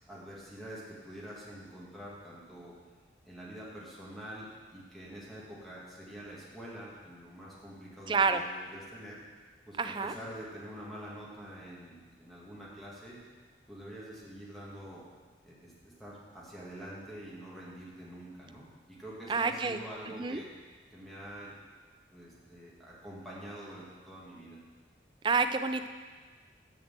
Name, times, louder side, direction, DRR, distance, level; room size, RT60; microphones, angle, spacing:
voice 1, 0.1-2.8 3.2-9.2 9.7-13.2 13.7-15.0 15.4-20.5 20.9-21.6 22.1-24.6, equal, ahead, -7 dB, 1.7 m, -46 dB
voice 2, 8.1-8.4 9.8-10.1 19.3-19.8 20.2-20.4 25.2-25.9, right 4 dB, 25° right, 8 dB, 0.4 m, -28 dB
7.0 x 6.6 x 7.3 m, 1.5 s
head